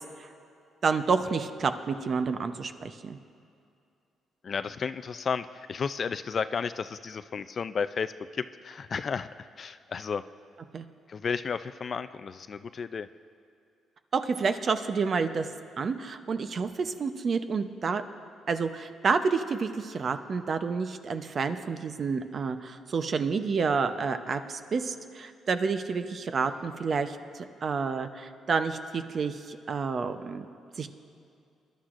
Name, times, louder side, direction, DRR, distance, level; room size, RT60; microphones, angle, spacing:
voice 1, 0.8-3.2 10.7-10.8 14.1-15.5 15.8-18.0 18.5-30.5 30.8-30.9, right 5 dB, 45° right, 9 dB, 0.7 m, -29 dB
voice 2, 4.4-9.3 9.6-10.2 11.1-13.1, left 6 dB, 45° left, 12 dB, 0.3 m, -33 dB
23.5 x 11.5 x 2.5 m, 2.5 s
cardioid pair, 90°, 0 cm